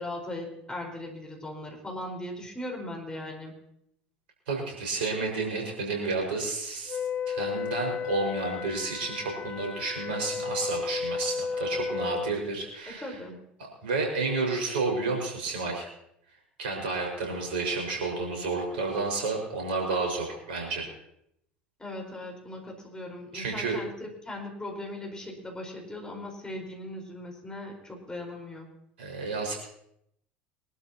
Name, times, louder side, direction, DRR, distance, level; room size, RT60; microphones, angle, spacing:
voice 1, 0.0-3.5 12.9-13.3 21.8-23.9 24.2-28.7, left 1 dB, 15° left, 1 dB, 4.9 m, -38 dB
voice 2, 4.5-7.0 7.3-13.1 13.8-15.9 16.6-20.9 23.3-23.8 29.0-29.6, right 3 dB, 70° right, 1 dB, 5.6 m, -31 dB
Wind instrument woodwind instrument, 6.9-12.4, left 5 dB, 30° left, 1.8 m, -33 dB
24.0 x 12.5 x 3.0 m, 0.76 s
figure-of-eight pair, 70°, 6 cm